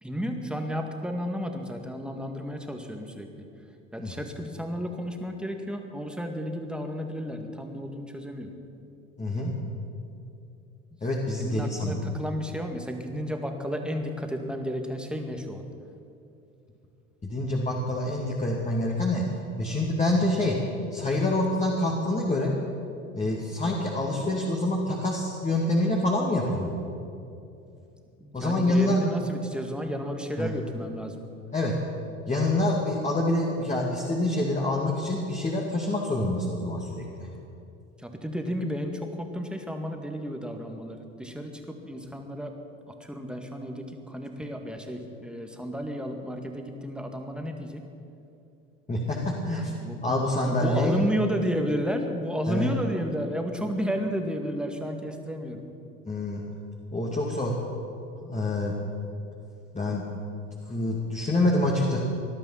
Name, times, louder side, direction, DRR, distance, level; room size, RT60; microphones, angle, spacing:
voice 1, 0.0-3.3 3.9-8.5 11.4-15.7 28.2-31.2 38.0-42.6 42.9-47.9 49.6-50.1 50.4-55.6, equal, ahead, 4 dB, 2.0 m, -32 dB
voice 2, 9.2-9.5 11.0-12.0 17.2-19.2 19.6-20.6 20.9-22.5 23.1-26.7 28.3-29.0 30.4-30.5 31.5-31.7 32.3-37.0 48.9-49.7 50.0-51.0 52.5-52.7 56.1-56.4 56.9-57.5 58.2-58.8 59.7-60.0 60.7-62.0, left 1 dB, 20° left, -2 dB, 2.4 m, -26 dB
19.0 x 12.0 x 5.8 m, 2.6 s
hypercardioid pair, 75°, 38 cm